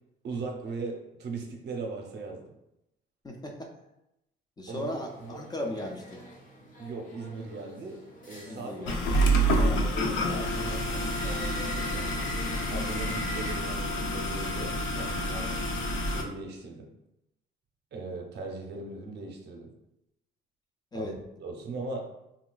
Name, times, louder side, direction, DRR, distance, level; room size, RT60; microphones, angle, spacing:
voice 1, 0.2-2.5 4.7-4.9 5.2-5.4 6.8-8.0 8.3-12.1 12.7-15.6 16.0-16.9 17.9-19.7 20.9-21.1 21.4-22.0, right 3 dB, 60° right, 2 dB, 0.6 m, -39 dB
voice 2, 3.2-3.7 4.6-6.2 8.4-9.1 20.9-21.2, left 1 dB, 20° left, 2 dB, 0.3 m, -37 dB
sound 1, 4.7-13.5, left 1 dB, 45° left, 0.8 m, -44 dB
sound 2, 8.9-16.2, right 1 dB, 80° left, 0.5 m, -28 dB
3.8 x 2.3 x 2.3 m, 0.87 s
cardioid pair, 120°, 20 cm